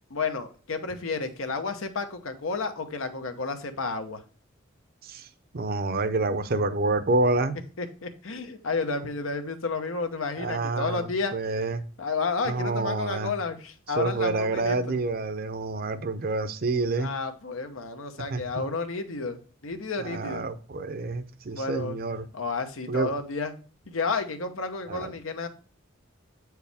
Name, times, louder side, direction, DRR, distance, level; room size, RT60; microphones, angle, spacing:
voice 1, 0.1-4.2 7.8-11.3 12.0-14.8 17.0-20.4 21.5-22.0 22.3-23.5 23.9-25.5, left 4 dB, 90° left, 1.0 m, -31 dB
voice 2, 5.5-7.6 10.4-11.8 12.4-13.3 14.0-17.1 18.3-18.6 20.0-22.3 22.9-23.1 24.9-25.1, right 3 dB, 50° right, 0.6 m, -28 dB
8.2 x 4.6 x 3.5 m
head